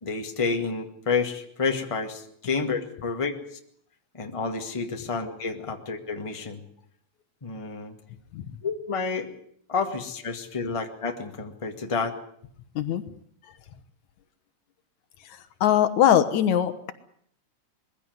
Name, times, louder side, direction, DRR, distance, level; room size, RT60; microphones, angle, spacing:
voice 1, 0.0-3.6 4.1-6.6 7.4-7.9 8.6-9.3 9.7-12.2, left 4 dB, 15° left, 4 dB, 1.6 m, -29 dB
voice 2, 15.3-16.9, left 10 dB, 75° left, 12 dB, 2.5 m, -22 dB
21.5 x 16.0 x 9.5 m, 0.66 s
omnidirectional pair, 3.4 m